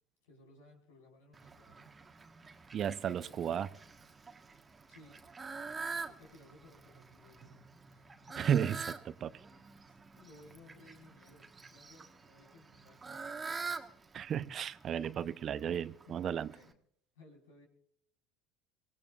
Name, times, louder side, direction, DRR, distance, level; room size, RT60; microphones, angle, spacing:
voice 1, 0.2-1.9 3.2-3.6 4.9-5.2 6.1-8.4 9.5-13.8 16.1-16.7 17.1-17.7, left 2 dB, 75° left, 1 dB, 4.7 m, -60 dB
Fowl, 1.3-16.7, right 4 dB, 20° right, 1.4 m, -47 dB
voice 2, 2.7-3.7 8.4-9.3 14.1-16.5, right 9 dB, 45° right, 17 dB, 0.6 m, -34 dB
25.5 x 17.5 x 2.4 m, 0.65 s
hypercardioid pair, 70°, 0 cm